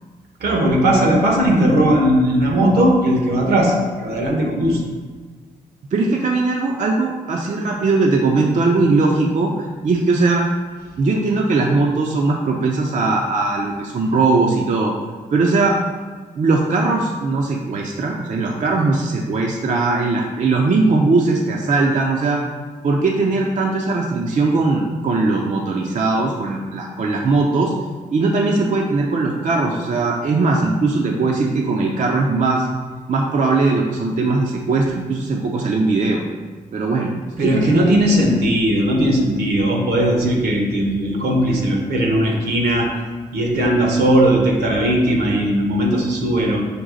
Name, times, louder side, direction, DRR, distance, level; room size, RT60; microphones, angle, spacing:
voice 1, 0.4-4.8 37.4-42.9 43.3-46.6, right 1 dB, 75° right, 0 dB, 0.9 m, -17 dB
voice 2, 5.9-10.5 11.0-14.9 15.3-15.8 16.4-22.4 22.8-27.7 28.1-32.7 33.1-36.2 36.7-37.1 37.4-37.9, right 3 dB, 45° right, 0 dB, 0.5 m, -19 dB
5.2 x 2.3 x 3.8 m, 1.5 s
hypercardioid pair, 40°, 17 cm